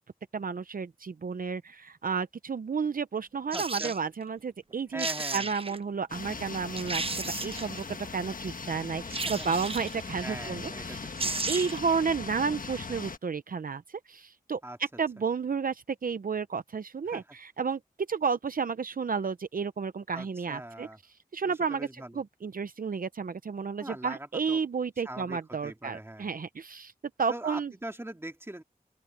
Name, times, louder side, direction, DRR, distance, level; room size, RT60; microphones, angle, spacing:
voice 1, 0.3-5.1 5.3-11.1 11.5-14.6 15.0-17.8 18.1-20.9 21.3-21.9 22.1-26.9 27.2-27.7, right 5 dB, 65° right, 0.7 m, -32 dB
voice 2, 3.5-3.9 4.9-5.5 9.2-9.5 10.2-11.3 14.6-14.8 17.1-17.2 20.1-21.0 21.4-22.2 23.8-24.6 25.0-26.3 27.3-28.6, right 1 dB, 15° right, 2.5 m, -41 dB
sound 1, 3.5-4.0 4.7-4.8 5.0-5.8 6.3-6.4 6.8-7.8 9.1-10.0 10.9-11.0 11.2-11.9 12.2-12.3, right 3 dB, 40° right, 0.9 m, -33 dB
sound 2, 6.1-13.2, left 4 dB, 65° left, 1.3 m, -39 dB
open air
wide cardioid pair, 70°, 15 cm